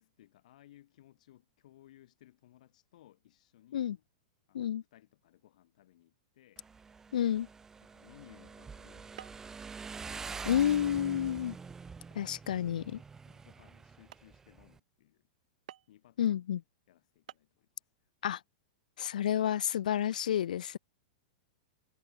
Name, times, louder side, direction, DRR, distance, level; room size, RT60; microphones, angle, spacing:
voice 1, 0.0-3.9 4.5-6.7 7.8-11.0 13.3-15.3 15.9-16.6 16.9-18.1 19.3-19.5, left 13 dB, 65° left, 4.2 m, -61 dB
Motorcycle, 6.6-14.8, right 5 dB, 10° right, 0.5 m, -46 dB
voice 2, 7.1-7.5 10.5-11.6 12.1-13.0 16.2-16.6 18.2-18.4 19.0-20.8, left 10 dB, 85° left, 0.4 m, -30 dB
sound 1, 9.2-9.6 10.0-10.4 10.9-11.0 11.6-11.9 12.5-12.6 13.1-13.2 13.7-13.8 14.1-14.3 15.7-16.1 16.9-17.0 17.3-17.5, right 12 dB, 70° right, 4.6 m, -52 dB
hypercardioid pair, 145°, 4 cm